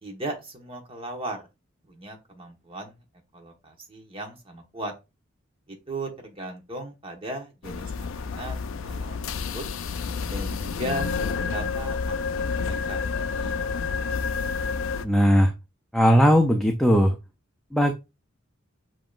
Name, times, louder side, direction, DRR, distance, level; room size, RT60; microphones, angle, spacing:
voice 1, 0.0-1.4 1.9-3.0 3.3-4.9 5.7-9.2 9.5-9.6 10.3-14.1, right 1 dB, 25° right, 3 dB, 1.1 m, -37 dB
sound 1, 7.6-15.1, left 5 dB, 70° left, 0.4 m, -29 dB
voice 2, 15.0-15.5 15.9-17.1 17.7-17.9, equal, ahead, 2 dB, 0.5 m, -18 dB
7.2 x 2.9 x 2.4 m, 0.25 s
head